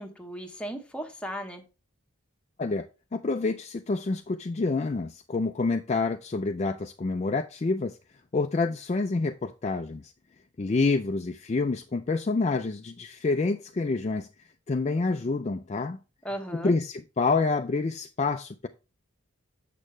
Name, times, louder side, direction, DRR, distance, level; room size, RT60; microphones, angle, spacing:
voice 1, 0.0-1.6 16.2-16.7, equal, 5° left, 1.0 m, -36 dB
voice 2, 3.1-8.0 8.3-10.1 10.6-14.3 14.7-16.0 16.5-18.7, left 3 dB, 30° left, 0.3 m, -27 dB
7.5 x 6.4 x 3.2 m
head